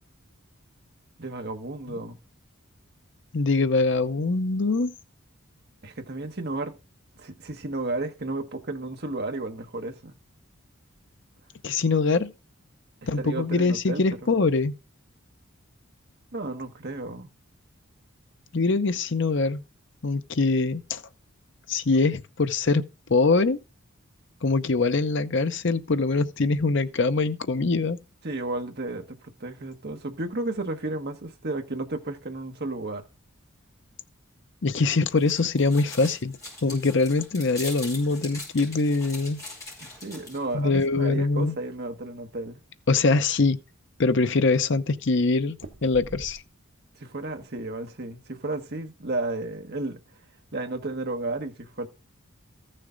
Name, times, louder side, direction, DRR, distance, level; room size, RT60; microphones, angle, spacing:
voice 1, 1.2-2.2 5.8-6.8 7.2-10.2 13.0-14.3 16.3-17.3 28.2-33.0 39.8-42.6 47.0-50.0 50.5-51.9, right 2 dB, 50° right, 1.3 m, -33 dB
voice 2, 3.3-4.9 11.6-12.3 13.1-14.7 18.5-19.6 20.0-21.0 21.7-22.8 23.1-23.6 24.4-28.0 34.6-39.4 40.5-41.5 42.9-43.6 44.0-45.6 45.8-46.4, left 3 dB, 60° left, 0.7 m, -23 dB
sound 1, 34.8-40.5, left 2 dB, 15° left, 4.9 m, -41 dB
sound 2, 42.2-42.6 43.1-43.2 43.4-44.1 45.6-46.8 47.2-47.6, right 2 dB, 75° right, 1.1 m, -46 dB
14.0 x 6.6 x 3.8 m
head